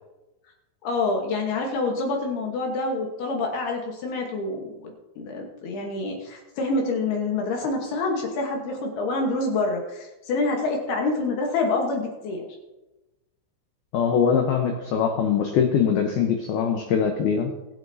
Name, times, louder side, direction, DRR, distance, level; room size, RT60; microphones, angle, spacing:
voice 1, 0.8-4.9 5.2-12.5, left 3 dB, 65° left, 1 dB, 2.7 m, -27 dB
voice 2, 13.9-17.5, left 7 dB, 85° left, 3 dB, 2.2 m, -22 dB
23.0 x 7.9 x 2.7 m, 1.0 s
omnidirectional pair, 5.8 m